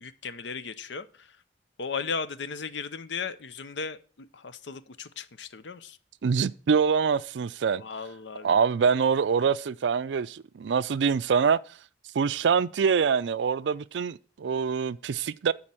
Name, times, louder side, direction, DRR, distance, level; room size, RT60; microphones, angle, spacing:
voice 1, 0.0-1.3 1.8-6.0 7.8-8.5, left 5 dB, 85° left, 0.7 m, -36 dB
voice 2, 6.2-7.8 8.4-11.6 12.1-15.5, right 6 dB, 85° right, 0.4 m, -25 dB
9.8 x 4.3 x 7.5 m
head